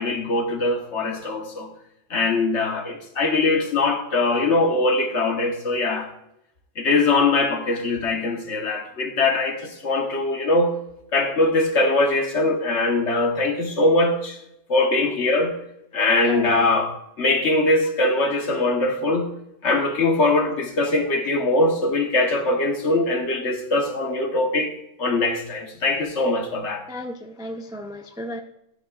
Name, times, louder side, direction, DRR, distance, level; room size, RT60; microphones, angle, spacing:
voice 1, 0.0-1.7 2.1-6.1 6.8-10.7 11.1-14.4 14.7-15.6 15.9-19.3 19.6-24.7 25.0-26.8, left 2 dB, 60° left, 1.5 m, -22 dB
voice 2, 16.2-16.8 26.9-28.4, equal, 5° right, 0.4 m, -34 dB
13.0 x 10.5 x 2.4 m
omnidirectional pair, 1.4 m